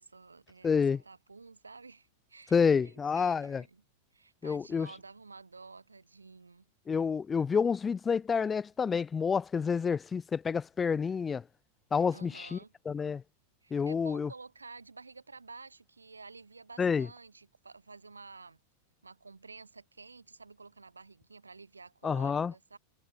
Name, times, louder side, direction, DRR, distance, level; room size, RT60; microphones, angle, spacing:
voice 1, 0.0-3.8 4.1-6.7 12.1-12.7 13.6-18.6 19.0-22.8, right 4 dB, 80° right, 4.8 m, -51 dB
voice 2, 0.6-1.0 2.5-3.6 4.4-4.9 6.9-11.4 11.9-12.6 12.9-13.2 13.7-14.3 16.8-17.1 22.0-22.5, left 6 dB, 20° left, 0.3 m, -28 dB
figure-of-eight pair, 90°, 0 cm